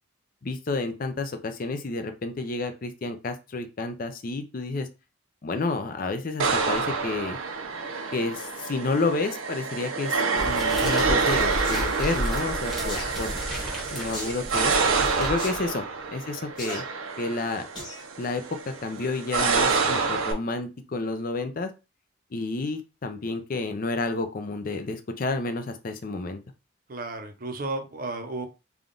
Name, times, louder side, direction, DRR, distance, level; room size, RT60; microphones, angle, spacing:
voice 1, 0.4-4.9 5.4-7.4 8.1-13.4 13.9-14.8 15.2-15.9 16.1-16.8 17.2-17.7 18.2-21.7 22.3-26.4, left 3 dB, 40° left, 8 dB, 0.5 m, -30 dB
sound 1, 6.4-20.3, right 4 dB, 85° right, 0.6 m, -27 dB
sound 2, 10.4-15.7, equal, ahead, 1.1 m, -33 dB
sound 3, 11.6-11.9 12.9-13.1 14.1-14.4 15.4-15.6 16.6-16.8 17.7-18.0 18.5-18.6, equal, 20° left, 1.2 m, -36 dB
voice 2, 26.9-28.5, right 2 dB, 40° right, 5 dB, 0.6 m, -33 dB
3.5 x 2.3 x 3.7 m, 0.29 s
head